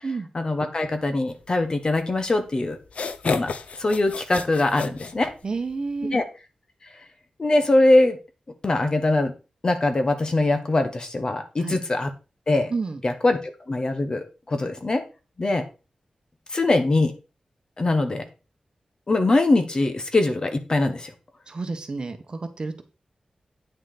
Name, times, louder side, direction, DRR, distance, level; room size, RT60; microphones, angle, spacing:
voice 1, 0.3-2.8 3.2-3.5 3.8-5.3 6.1-6.3 7.4-8.2 8.6-9.3 9.6-12.1 12.5-12.7 13.0-13.4 13.7-15.0 15.4-15.6 16.5-17.1 17.8-18.3 19.1-21.1, left 2 dB, 35° left, 8 dB, 1.3 m, -22 dB
sound 1, 2.8-5.7, left 5 dB, 85° left, 0.7 m, -32 dB
voice 2, 5.4-6.2 11.6-11.8 12.7-13.0 21.5-22.8, right 4 dB, 45° right, 7 dB, 1.3 m, -30 dB
9.3 x 6.2 x 4.3 m, 0.31 s
wide cardioid pair, 125°, 2 cm